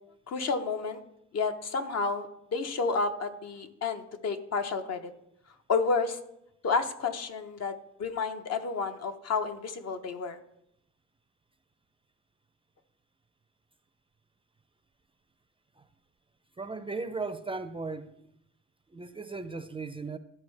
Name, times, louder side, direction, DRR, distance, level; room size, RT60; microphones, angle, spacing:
voice 1, 0.3-1.0 1.3-2.3 2.5-5.0 5.7-6.2 6.6-10.4, left 4 dB, 55° left, 0.9 m, -30 dB
voice 2, 16.6-18.1 18.9-20.2, right 3 dB, 20° right, 0.4 m, -36 dB
13.0 x 4.5 x 3.2 m
cardioid pair, 90°, 30 cm